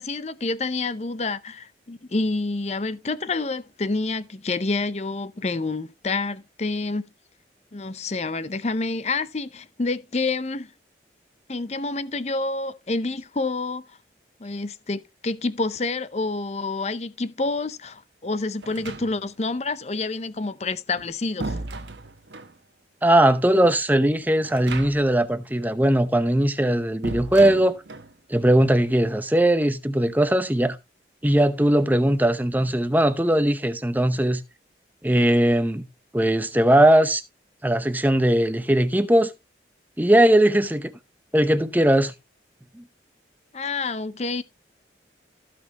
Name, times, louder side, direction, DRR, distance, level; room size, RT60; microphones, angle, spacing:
voice 1, 0.0-7.0 7.7-10.7 11.5-13.8 14.4-21.6 43.5-44.4, left 3 dB, 35° left, 0.6 m, -28 dB
sound 1, 18.6-19.5 20.7-22.6 24.4-25.3 25.5-25.6 27.0-28.2, right 2 dB, 75° right, 1.1 m, -35 dB
voice 2, 23.0-27.8 28.3-30.8 31.2-34.4 35.0-35.9 36.1-37.2 37.6-39.3 40.0-40.9 41.3-42.1, right 1 dB, 10° right, 0.7 m, -19 dB
15.5 x 6.0 x 2.9 m
head